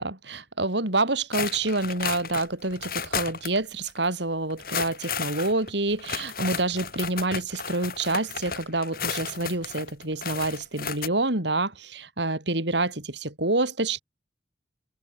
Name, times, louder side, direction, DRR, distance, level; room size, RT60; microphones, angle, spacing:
voice 1, 0.0-14.0, right 2 dB, 70° right, 3.9 m, -27 dB
sound 1, 1.3-3.6 3.9-4.0 4.5-11.1, left 6 dB, 50° left, 5.7 m, -33 dB
head